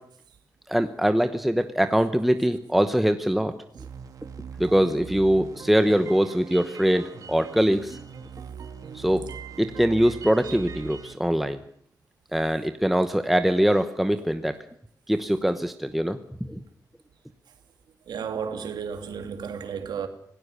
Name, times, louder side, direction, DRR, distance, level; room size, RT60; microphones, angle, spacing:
voice 1, 0.7-3.5 4.6-8.0 8.9-9.2 9.6-11.6 12.3-14.6 15.1-16.6, equal, ahead, 1.0 m, -23 dB
sound 1, 3.7-11.1, right 6 dB, 55° right, 2.5 m, -41 dB
voice 2, 18.1-20.1, right 7 dB, 85° right, 2.5 m, -33 dB
26.5 x 17.5 x 6.8 m
wide cardioid pair, 175°, 7 cm